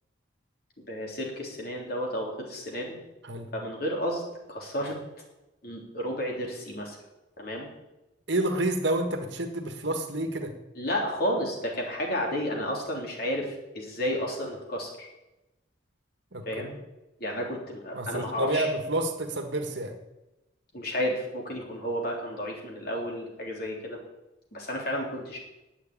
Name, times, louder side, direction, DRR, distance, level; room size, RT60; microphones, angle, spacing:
voice 1, 0.8-3.0 3.5-4.2 4.5-5.0 5.6-7.0 7.4-7.7 10.8-15.1 16.5-16.7 17.2-18.7 20.7-24.0 24.5-25.4, equal, 50° left, -1 dB, 3.6 m, -32 dB
voice 2, 8.3-10.5 16.3-16.8 17.9-19.9, right 1 dB, 65° right, 5 dB, 1.7 m, -29 dB
9.8 x 8.2 x 9.8 m, 0.97 s
head